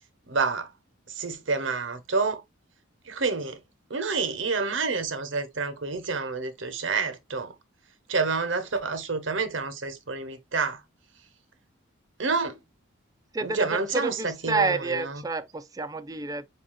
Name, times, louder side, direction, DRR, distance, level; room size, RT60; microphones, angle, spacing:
voice 1, 0.3-0.7 1.1-2.4 3.1-3.6 3.9-7.5 8.1-10.8 12.2-12.6 13.4-15.2, right 4 dB, 70° right, 1.0 m, -28 dB
voice 2, 13.3-16.5, right 4 dB, 20° right, 0.3 m, -29 dB
7.5 x 2.7 x 2.3 m
head